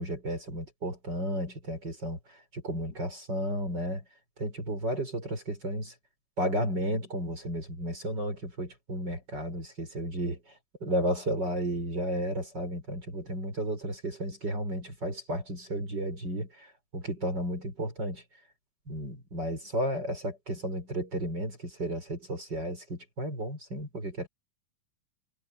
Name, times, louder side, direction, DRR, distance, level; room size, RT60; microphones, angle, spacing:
voice 1, 0.0-2.2 2.5-4.0 4.4-5.9 6.4-10.4 10.8-16.7 16.9-18.2 18.9-24.3, equal, 25° right, 5.6 m, -33 dB
omnidirectional pair, 4.3 m